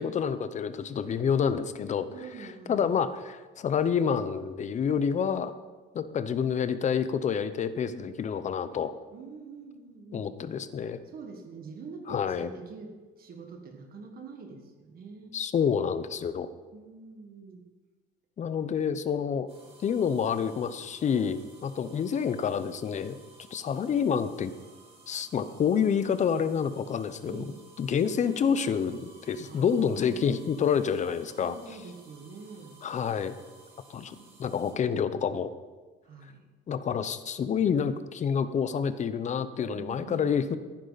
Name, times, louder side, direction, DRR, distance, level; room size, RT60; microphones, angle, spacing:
voice 1, 0.0-2.1 2.7-5.5 5.9-8.9 10.1-11.0 12.1-12.5 15.3-16.5 18.4-19.5 19.8-23.2 23.5-24.5 25.1-27.4 27.8-31.6 32.8-33.3 33.9-35.5 36.7-40.6, left 7 dB, 35° left, 12 dB, 0.8 m, -28 dB
voice 2, 2.1-3.0 9.1-10.3 10.8-15.4 16.7-17.6 27.3-27.6 29.4-30.3 31.3-32.8 34.1-34.4 36.0-36.4 39.7-40.3, right 4 dB, 45° right, 4 dB, 1.7 m, -45 dB
sound 1, 19.5-34.7, right 3 dB, 30° right, 4.4 m, -56 dB
14.5 x 10.5 x 4.1 m, 1.3 s
cardioid pair, 125°, 20 cm